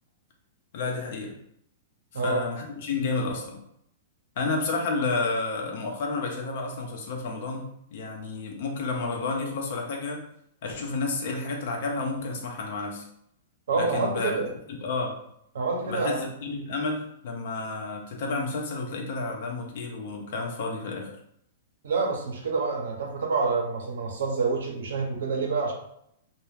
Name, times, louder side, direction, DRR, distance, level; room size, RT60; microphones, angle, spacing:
voice 1, 0.7-1.4 2.1-3.6 4.4-10.2 10.6-13.0 13.7-14.4 14.7-15.2 15.9-21.2, left 3 dB, 60° left, 1 dB, 0.7 m, -31 dB
voice 2, 13.7-14.5 15.5-16.2 21.8-25.7, right 4 dB, 75° right, 1 dB, 0.7 m, -27 dB
2.2 x 2.2 x 3.2 m, 0.73 s
hypercardioid pair, 115°, 0 cm